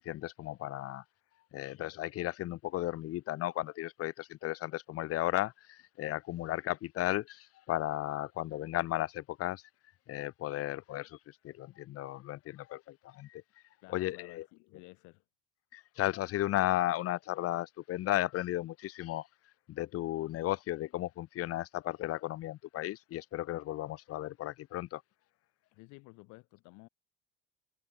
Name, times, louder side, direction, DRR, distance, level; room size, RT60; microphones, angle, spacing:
voice 1, 0.0-1.0 1.5-9.6 10.1-13.4 13.9-14.4 15.7-19.3 19.7-25.0, left 15 dB, 50° left, 0.9 m, -35 dB
voice 2, 13.8-15.2 25.7-26.9, left 26 dB, 70° left, 6.2 m, -54 dB
supercardioid pair, 95°, 31 cm